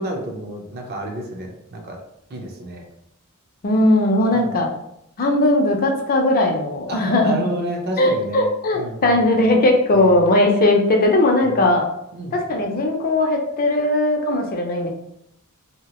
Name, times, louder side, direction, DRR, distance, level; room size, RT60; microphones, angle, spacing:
voice 1, 0.0-2.0 2.3-2.8 4.3-4.5 6.9-8.5 8.7-9.3 10.0-10.3 11.4-11.6 12.1-12.4, right 1 dB, 45° right, 1 dB, 0.6 m, -30 dB
voice 2, 3.6-4.7 5.2-7.3 8.0-11.9 12.3-14.9, left 1 dB, 40° left, 2 dB, 0.5 m, -18 dB
2.8 x 2.4 x 2.9 m, 0.76 s
head